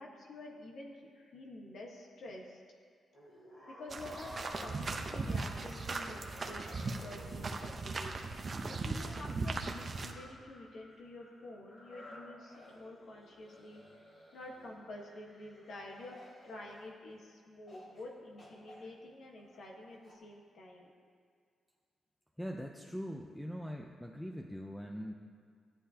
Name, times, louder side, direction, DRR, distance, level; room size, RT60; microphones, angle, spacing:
voice 1, 0.0-2.6 3.8-6.2 6.5-13.8 14.3-16.2 16.4-20.9, left 1 dB, 70° left, -1 dB, 1.3 m, -49 dB
sound 1, 3.1-17.2 17.7-18.1 18.4-20.1, left 1 dB, 45° left, 2.8 m, -54 dB
sound 2, 3.9-10.1, right 3 dB, 40° right, 0.7 m, -38 dB
voice 2, 22.4-25.1, equal, ahead, 2 dB, 0.5 m, -42 dB
14.5 x 10.0 x 2.8 m, 2.1 s
cardioid pair, 110°, 0 cm